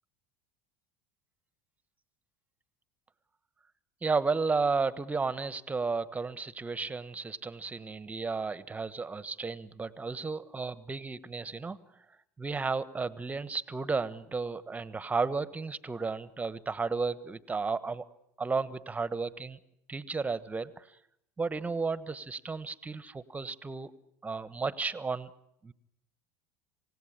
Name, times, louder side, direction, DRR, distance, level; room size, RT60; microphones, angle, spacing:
voice 1, 4.0-11.8 12.4-18.0 18.4-19.6 19.9-20.8 21.4-23.9 24.2-25.3 25.6-25.7, right 4 dB, 15° right, 16 dB, 1.3 m, -33 dB
27.5 x 17.0 x 8.7 m, 0.81 s
hypercardioid pair, 75°, 9 cm